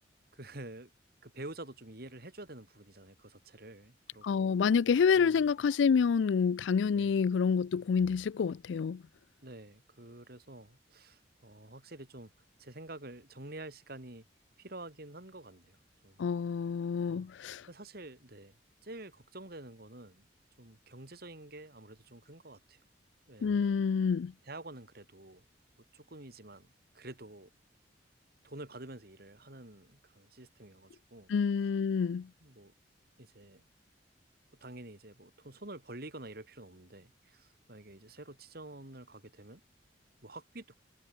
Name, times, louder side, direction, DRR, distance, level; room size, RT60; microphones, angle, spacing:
voice 1, 0.3-0.9 1.2-4.6 5.1-5.4 6.9-7.1 9.4-12.3 12.6-14.2 14.6-16.2 17.1-17.3 17.7-18.5 18.8-20.3 20.6-22.8 23.3-23.8 24.4-25.4 25.9-27.5 28.4-31.3 32.4-32.7 33.2-33.6 34.6-39.6 40.2-40.7, right 2 dB, 55° right, 3.2 m, -48 dB
voice 2, 4.2-9.0 16.2-17.7 23.4-24.3 31.3-32.3, left 6 dB, 80° left, 0.4 m, -28 dB
head